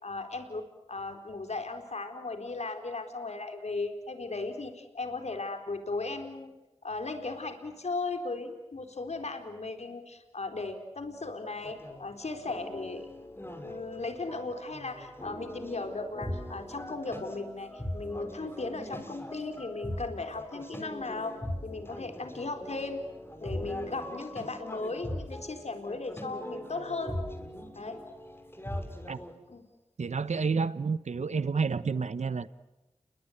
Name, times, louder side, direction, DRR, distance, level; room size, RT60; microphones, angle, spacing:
voice 1, 0.0-6.5 6.8-13.1 13.6-21.4 21.6-23.0 23.4-27.2 27.8-28.0 29.5-29.6, left 3 dB, 70° left, 6 dB, 4.2 m, -37 dB
sound 1, 11.6-29.3, equal, 20° left, 6.5 m, -41 dB
voice 2, 30.0-32.5, right 5 dB, 75° right, 15 dB, 1.0 m, -29 dB
29.5 x 23.5 x 8.0 m, 1.1 s
cardioid pair, 45°, 12 cm